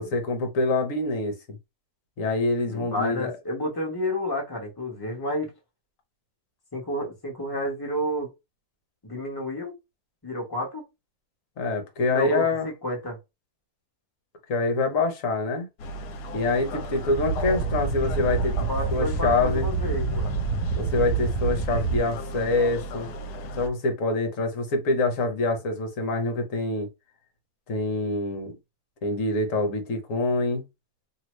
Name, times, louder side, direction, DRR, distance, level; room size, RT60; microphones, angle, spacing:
voice 1, 0.0-1.6 2.2-3.3 11.6-12.7 14.5-15.7 16.3-19.7 20.8-23.1 23.6-26.9 27.7-28.5 29.0-30.6, left 2 dB, 55° left, 1.2 m, -26 dB
voice 2, 2.7-5.5 6.7-8.3 9.0-9.7 10.2-10.8 12.1-13.2 18.7-20.4, left 1 dB, 15° left, 1.0 m, -30 dB
sound 1, 15.8-23.7, right 1 dB, 80° left, 1.2 m, -36 dB
sound 2, 16.9-22.0, right 4 dB, 70° right, 1.1 m, -27 dB
2.9 x 2.7 x 3.1 m
omnidirectional pair, 1.7 m